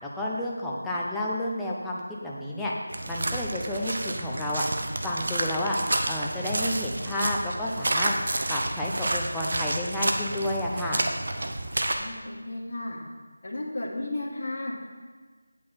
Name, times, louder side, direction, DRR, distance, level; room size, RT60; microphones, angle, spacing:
voice 1, 0.0-2.7 3.1-4.7 5.0-5.8 6.1-8.1 8.5-11.0, left 1 dB, 5° left, -5 dB, 0.8 m, -30 dB
sound 1, 2.9-11.9, right 2 dB, 55° right, 0.9 m, -30 dB
voice 2, 11.9-13.0 13.4-14.7, left 2 dB, 40° left, -6 dB, 1.7 m, -34 dB
8.6 x 8.2 x 4.3 m, 1.5 s
figure-of-eight pair, 165°, 0 cm